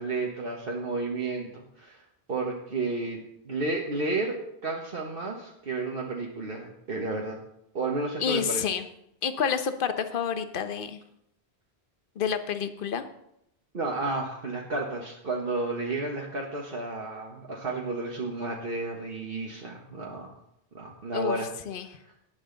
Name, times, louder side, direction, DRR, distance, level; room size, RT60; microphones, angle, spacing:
voice 1, 0.0-2.0 2.3-3.2 3.4-7.4 7.7-8.7 13.7-20.3 20.7-21.5, right 3 dB, 60° right, -1 dB, 1.6 m, -32 dB
voice 2, 8.2-8.9 9.2-11.0 12.2-13.0 21.1-21.4 21.7-21.9, left 7 dB, 55° left, 10 dB, 1.0 m, -29 dB
18.5 x 7.9 x 3.9 m, 0.77 s
omnidirectional pair, 1.1 m